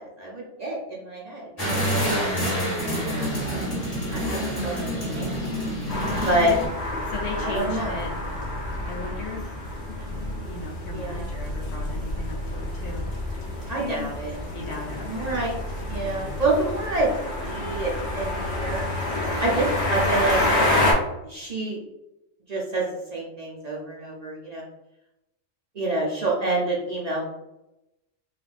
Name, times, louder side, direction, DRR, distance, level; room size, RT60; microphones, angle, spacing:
voice 1, 0.0-1.5 1.8-2.7 3.0-3.4 4.1-4.4 4.6-5.4 6.3-6.5 7.3-8.0 10.0-10.1 10.9-11.3 13.7-14.3 15.1-15.6 15.9-17.1 17.5-18.8 19.4-20.8 21.2-21.8 22.5-22.9 23.1-24.6 25.7-27.3, right 2 dB, 50° right, -4 dB, 0.5 m, -27 dB
sound 1, 1.6-6.7, equal, 30° left, 1.1 m, -27 dB
sound 2, 5.9-20.9, left 1 dB, 60° left, 1.1 m, -28 dB
voice 2, 7.1-8.1 8.9-9.4 10.4-13.1 13.7-14.1 14.5-15.3 16.0-16.3, left 4 dB, 80° left, -1 dB, 0.9 m, -37 dB
3.4 x 2.3 x 2.4 m, 0.91 s
omnidirectional pair, 1.3 m